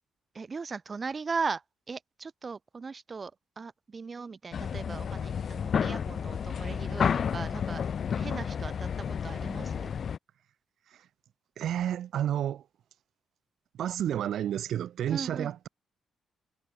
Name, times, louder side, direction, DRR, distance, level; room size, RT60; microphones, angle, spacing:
voice 1, 0.3-1.6 1.9-3.3 3.6-7.8 8.2-9.9 15.1-15.5, right 4 dB, 30° right, 6.5 m, -38 dB
sound 1, 4.5-10.2, left 7 dB, 45° left, 0.6 m, -31 dB
voice 2, 11.6-12.6 13.8-15.7, right 10 dB, 65° right, 6.1 m, -30 dB
cardioid pair, 140°, 0 cm